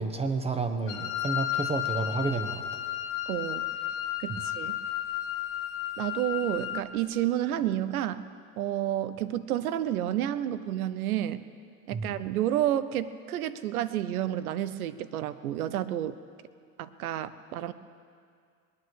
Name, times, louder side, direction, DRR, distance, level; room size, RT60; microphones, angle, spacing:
voice 1, 0.0-2.6 4.3-4.4 11.9-12.2, right 3 dB, 15° right, 7 dB, 1.2 m, -30 dB
Wind instrument woodwind instrument, 0.9-6.9, left 12 dB, 70° left, 1.7 m, -33 dB
voice 2, 3.3-3.7 4.2-4.8 6.0-8.2 8.6-11.4 11.9-16.2 16.8-17.7, right 12 dB, 75° right, 14 dB, 0.9 m, -30 dB
21.0 x 9.8 x 6.3 m, 2.2 s
hypercardioid pair, 95°, 44 cm